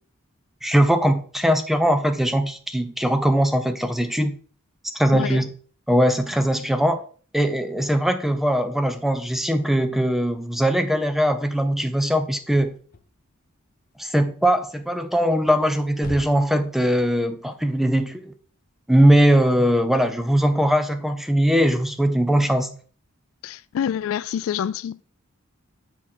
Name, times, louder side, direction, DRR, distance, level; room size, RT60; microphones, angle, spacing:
voice 1, 0.6-4.4 4.9-5.5 5.9-7.0 7.3-12.8 14.0-18.3 18.9-22.7, equal, ahead, 0.7 m, -20 dB
sound 1, 12.5-20.3, left 2 dB, 45° left, 0.8 m, -45 dB
voice 2, 23.4-25.0, left 9 dB, 70° left, 0.3 m, -27 dB
8.4 x 4.6 x 4.2 m
head